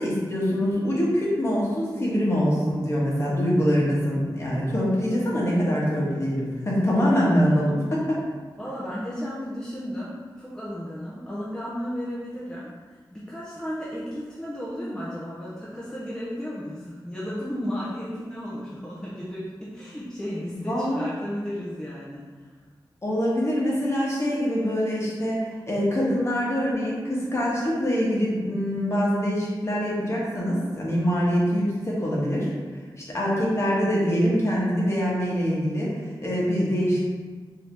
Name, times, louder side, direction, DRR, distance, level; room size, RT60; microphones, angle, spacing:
voice 1, 0.0-8.2 20.5-21.1 23.0-32.5 33.1-37.0, equal, 35° left, -5 dB, 1.2 m, -24 dB
voice 2, 8.6-12.7 13.1-22.2, equal, 10° left, -8 dB, 0.7 m, -34 dB
4.4 x 2.8 x 3.4 m, 1.4 s
wide cardioid pair, 105°, 8 cm